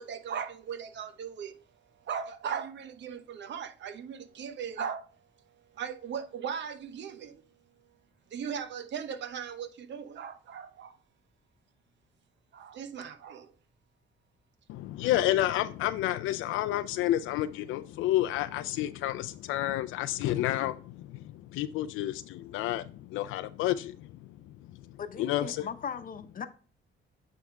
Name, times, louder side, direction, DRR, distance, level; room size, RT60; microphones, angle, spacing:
voice 1, 0.0-1.5 2.0-5.1 5.7-7.4 8.3-11.0 12.5-13.5 15.0-15.1, right 7 dB, 65° right, 0.9 m, -38 dB
voice 2, 14.7-22.8 23.1-24.1 25.2-25.6, left 14 dB, 90° left, 0.4 m, -30 dB
voice 3, 25.0-26.5, left 7 dB, 45° left, 0.9 m, -38 dB
9.1 x 3.5 x 3.6 m
cardioid pair, 90°, 20 cm